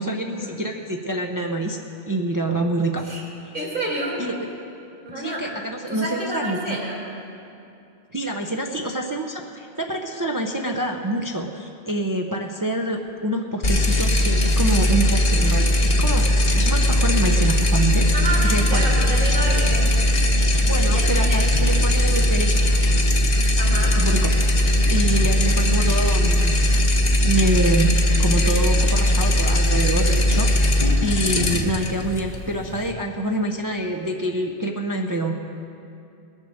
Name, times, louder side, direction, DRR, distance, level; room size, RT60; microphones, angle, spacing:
voice 1, 0.0-1.8 2.1-3.1 4.2-4.3 5.2-6.8 8.1-18.1 18.4-18.9 20.6-22.6 24.0-24.3 24.9-26.6 27.2-27.9 28.2-30.5 31.0-35.4, right 1 dB, 25° right, 2 dB, 0.6 m, -26 dB
voice 2, 3.5-4.2 5.0-5.5 5.9-7.0 18.1-19.9 20.8-21.4 23.6-24.0, right 1 dB, 55° right, -3 dB, 3.1 m, -29 dB
sound 1, 13.6-32.9, left 1 dB, 40° left, 1.2 m, -19 dB
20.5 x 7.4 x 6.4 m, 2.7 s
omnidirectional pair, 1.1 m